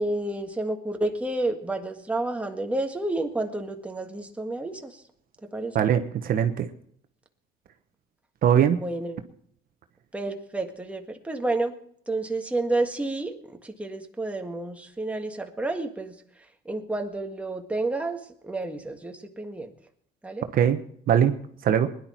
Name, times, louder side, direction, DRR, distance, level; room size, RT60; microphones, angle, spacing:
voice 1, 0.0-5.0 5.4-5.8 8.7-9.2 10.1-11.7 12.1-16.2 16.6-19.7 20.2-20.4, right 2 dB, 10° right, 3 dB, 1.7 m, -30 dB
voice 2, 5.7-6.7 8.4-8.8 20.5-20.8 21.1-21.4 21.6-21.9, right 9 dB, 60° right, 8 dB, 1.1 m, -21 dB
20.5 x 11.0 x 4.5 m, 0.66 s
cardioid pair, 110°, 17 cm